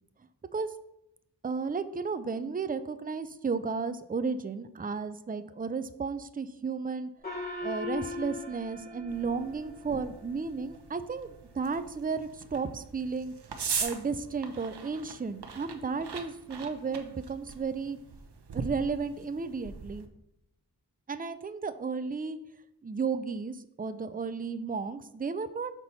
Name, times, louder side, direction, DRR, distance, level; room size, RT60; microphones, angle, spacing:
voice 1, 1.4-7.1 7.6-13.3 13.8-18.0 18.5-20.1 21.1-22.4 22.8-25.7, right 5 dB, 20° right, 12 dB, 0.4 m, -33 dB
Gong, 7.2-10.1, left 3 dB, 25° left, 2.3 m, -39 dB
sound 1, 9.1-20.1, right 5 dB, 75° right, 0.7 m, -41 dB
6.0 x 4.1 x 5.5 m, 0.83 s
wide cardioid pair, 45°, 40 cm